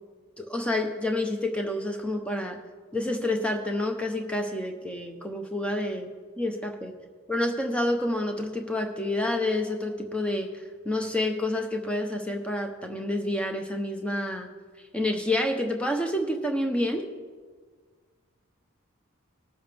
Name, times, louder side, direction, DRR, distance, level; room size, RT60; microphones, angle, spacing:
voice 1, 0.4-2.6 2.9-6.1 6.4-6.9 7.3-14.5 14.9-17.1, left 1 dB, 5° left, 3 dB, 0.8 m, -28 dB
19.5 x 7.2 x 3.5 m, 1.6 s
head